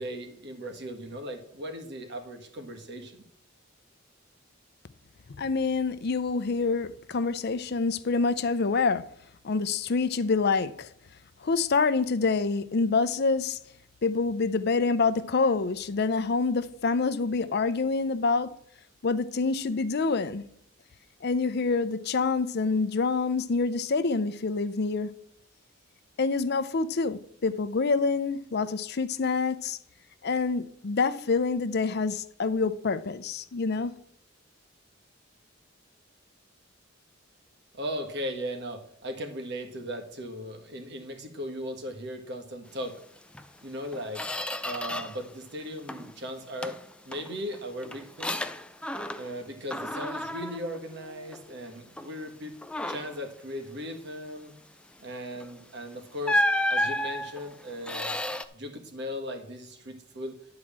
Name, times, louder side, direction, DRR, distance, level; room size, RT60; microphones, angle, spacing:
voice 1, 0.0-3.2 37.7-43.0 43.6-44.3 44.6-46.8 47.0-48.4 49.2-52.6 52.9-54.5 55.0-56.4 56.7-58.2 58.5-60.3, equal, 60° right, 1.7 m, -37 dB
voice 2, 5.4-9.0 9.4-10.9 11.4-13.6 14.0-18.5 19.0-20.4 21.2-25.1 26.2-29.8 30.2-33.9, left 4 dB, 55° left, 0.6 m, -26 dB
Squeak, 43.3-43.5 43.9-45.3 45.6-46.2 46.6-49.4 49.7-51.5 52.0-52.2 52.6-53.2 55.4-55.5 56.2-58.5, left 1 dB, 5° left, 0.5 m, -32 dB
10.5 x 4.7 x 7.3 m
head